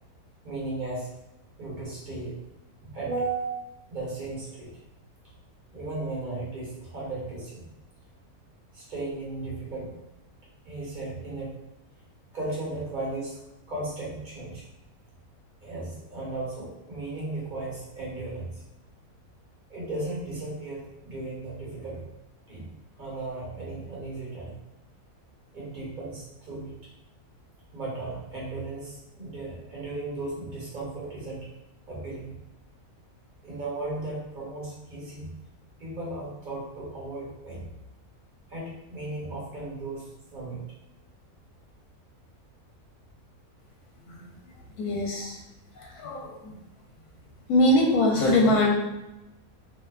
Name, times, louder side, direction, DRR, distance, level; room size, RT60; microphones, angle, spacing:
voice 1, 0.4-1.1 1.6-2.4 2.8-4.8 5.7-7.7 8.7-9.9 10.6-11.6 12.3-13.4 13.7-14.6 15.6-18.6 19.7-22.1 22.5-22.6 23.0-24.5 25.5-26.7 27.7-31.5 31.9-32.4 33.4-35.3 35.8-37.7 38.5-40.6, right 2 dB, 40° right, -6 dB, 0.9 m, -35 dB
voice 2, 44.8-45.4 45.8-46.6 47.5-48.7, left 1 dB, 80° left, -1 dB, 1.0 m, -23 dB
2.6 x 2.2 x 2.3 m, 0.93 s
omnidirectional pair, 1.6 m